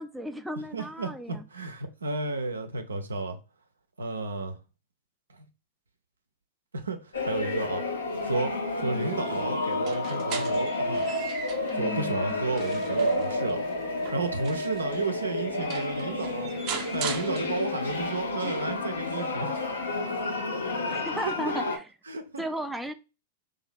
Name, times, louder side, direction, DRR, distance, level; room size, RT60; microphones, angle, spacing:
voice 1, 0.0-1.4 7.9-8.1 8.3-9.2 11.7-12.4 20.9-21.9 22.4-22.9, equal, 5° right, 0.4 m, -36 dB
voice 2, 0.7-3.4 4.0-4.6 6.7-7.8 8.2-11.1 11.7-13.6 14.1-16.5 16.9-19.6 21.2-21.3 22.1-22.4, right 3 dB, 85° right, 0.6 m, -32 dB
sound 1, 7.1-21.8, left 2 dB, 80° left, 0.8 m, -30 dB
sound 2, 9.7-11.8 12.3-14.9 15.4-15.5 15.7-17.9, right 6 dB, 45° right, 0.7 m, -39 dB
2.8 x 2.7 x 4.1 m
figure-of-eight pair, 95°, 0 cm